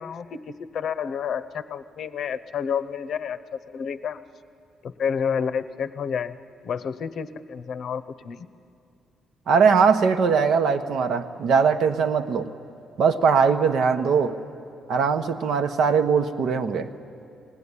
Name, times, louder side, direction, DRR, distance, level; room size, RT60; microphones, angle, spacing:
voice 1, 0.0-3.4 3.7-4.2 4.8-6.4 6.6-8.5, left 7 dB, 50° left, 13 dB, 0.7 m, -29 dB
voice 2, 9.5-12.5 13.0-14.4 14.9-16.9, right 5 dB, 65° right, 7 dB, 1.1 m, -20 dB
22.5 x 17.0 x 9.8 m, 2.5 s
cardioid pair, 155°, 0 cm